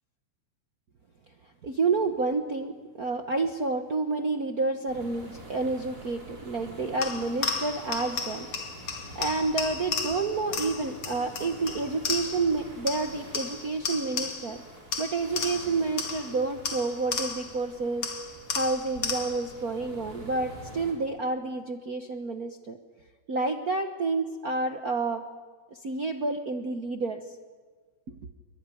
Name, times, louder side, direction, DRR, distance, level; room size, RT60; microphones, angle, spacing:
voice 1, 1.6-8.5 8.8-8.9 9.1-14.6 15.0-18.1 18.5-22.8 23.3-25.2 25.8-27.2 28.1-28.2, right 3 dB, 65° right, 6 dB, 0.8 m, -29 dB
sound 1, 4.9-20.9, right 1 dB, 30° right, 5.7 m, -47 dB
sound 2, 7.0-12.6 12.9-14.6 14.9-17.6 18.0-19.5, left 5 dB, 50° left, 3.0 m, -34 dB
25.0 x 23.0 x 9.9 m, 1.5 s
omnidirectional pair, 3.5 m